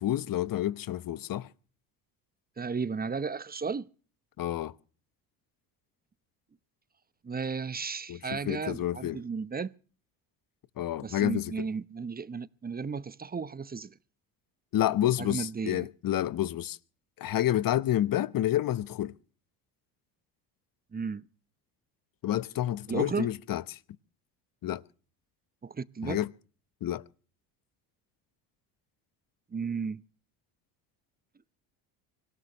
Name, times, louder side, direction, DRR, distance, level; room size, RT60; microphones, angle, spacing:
voice 1, 0.0-1.5 4.4-4.7 8.1-9.2 10.8-11.7 14.7-16.8 17.2-19.1 22.2-23.8 24.6-24.8 26.0-26.3 26.8-27.0, left 12 dB, 45° left, 1.0 m, -29 dB
voice 2, 2.6-3.9 7.2-9.7 11.0-13.9 15.2-15.9 20.9-21.2 22.9-23.3 25.6-26.2 29.5-30.0, right 5 dB, 20° right, 0.8 m, -34 dB
25.0 x 17.5 x 3.0 m
hypercardioid pair, 70°, 47 cm